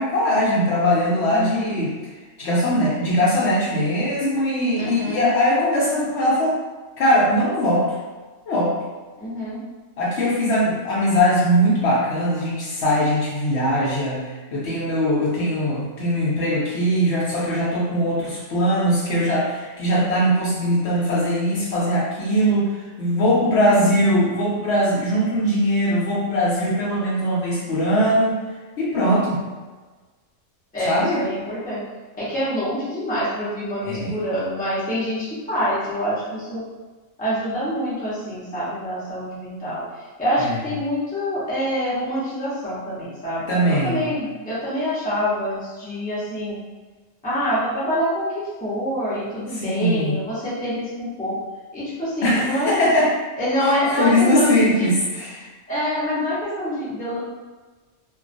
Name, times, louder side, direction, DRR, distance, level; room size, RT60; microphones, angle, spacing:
voice 1, 0.0-1.9 2.4-6.6 7.0-8.0 8.5-8.8 10.0-28.4 28.8-29.4 30.8-31.3 33.8-34.2 40.4-40.6 43.5-44.1 49.5-50.2 52.2-53.1 53.6-55.5, equal, 65° left, -5 dB, 0.8 m, -21 dB
voice 2, 1.3-1.7 4.8-5.3 9.2-9.6 23.5-23.9 30.7-31.8 32.2-36.6 37.2-39.8 40.2-43.4 43.7-46.6 47.2-51.4 51.7-52.7 53.4-54.6 55.7-57.2, equal, 10° left, -10 dB, 0.5 m, -26 dB
2.3 x 2.2 x 2.5 m, 1.3 s
omnidirectional pair, 1.3 m